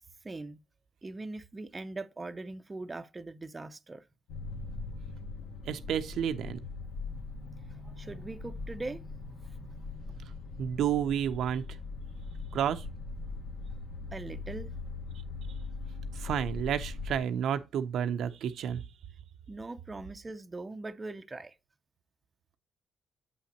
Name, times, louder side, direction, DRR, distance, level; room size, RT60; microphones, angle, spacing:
voice 1, 0.2-0.6 1.0-4.0 7.2-10.5 14.1-14.7 19.5-21.5, right 2 dB, 20° right, 0.5 m, -42 dB
sound 1, 4.3-17.2, left 3 dB, 75° left, 1.4 m, -41 dB
voice 2, 5.7-6.6 10.3-11.6 12.5-12.8 16.1-18.8, right 9 dB, 75° right, 0.5 m, -31 dB
7.6 x 5.7 x 2.9 m
cardioid pair, 90°, 0 cm